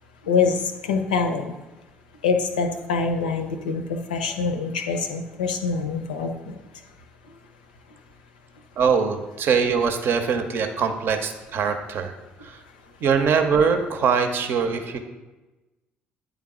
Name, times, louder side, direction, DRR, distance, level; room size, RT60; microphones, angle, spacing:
voice 1, 0.3-0.6 0.8-1.4 2.2-3.8 4.1-6.5, left 5 dB, 80° left, 5 dB, 0.5 m, -24 dB
voice 2, 8.8-12.1 12.4-12.6 13.0-15.0, right 6 dB, 55° right, 7 dB, 0.7 m, -22 dB
9.1 x 3.5 x 3.6 m, 1.1 s
figure-of-eight pair, 50°, 5 cm